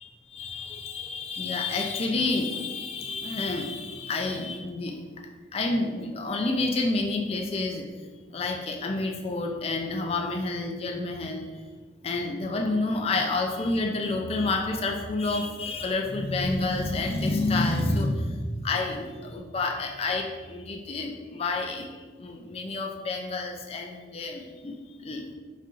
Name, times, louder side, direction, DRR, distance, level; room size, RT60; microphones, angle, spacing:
voice 1, 0.3-4.9 5.5-7.8 8.3-11.5 12.0-21.9 22.2-25.2, left 2 dB, 30° left, 2 dB, 0.4 m, -29 dB
4.2 x 2.5 x 3.7 m, 1.4 s
head